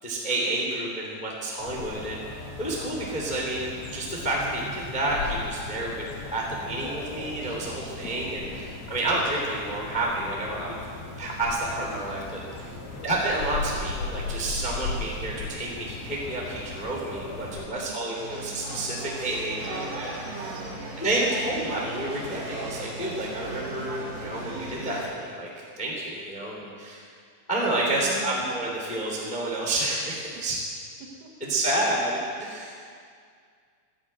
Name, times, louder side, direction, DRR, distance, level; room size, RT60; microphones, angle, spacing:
voice 1, 0.0-6.0 6.3-10.8 11.2-12.7 13.0-20.5 21.0-23.9 24.2-25.5 25.7-27.0 27.5-30.6 31.4-32.8, right 1 dB, 20° left, -2 dB, 1.1 m, -30 dB
sound 1, 1.6-17.6, left 3 dB, 80° left, 5.2 m, -37 dB
voice 2, 12.4-13.0 17.4-18.0 20.2-20.8 23.5-23.8 27.6-28.3 30.4-30.5 31.0-31.3, right 5 dB, 85° right, 2 dB, 4.2 m, -44 dB
sound 2, 18.1-25.0, right 2 dB, 55° right, 4.7 m, -36 dB
15.0 x 11.0 x 8.0 m, 2.1 s
omnidirectional pair, 5.6 m